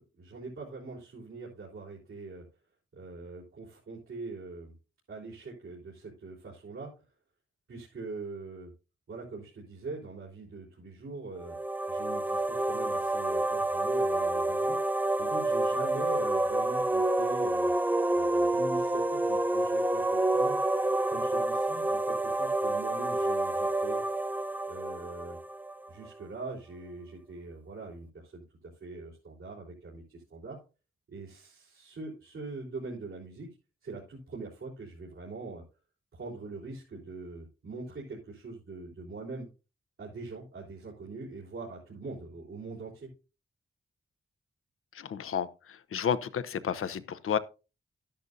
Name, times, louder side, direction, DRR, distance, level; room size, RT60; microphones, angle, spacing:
voice 1, 0.0-2.4 2.9-4.7 5.1-6.9 7.7-8.7 9.1-11.6 11.9-14.8 15.2-17.7 18.1-20.6 21.1-24.0 24.7-25.4 25.9-28.4 28.8-30.6 31.1-33.5 33.8-35.6 36.1-39.5 40.0-43.1, right 3 dB, 80° right, 3.9 m, -42 dB
sound 1, 11.4-26.1, right 2 dB, 10° right, 0.4 m, -28 dB
voice 2, 44.9-47.4, left 8 dB, 85° left, 0.8 m, -31 dB
12.5 x 10.5 x 2.6 m
cardioid pair, 80°, 21 cm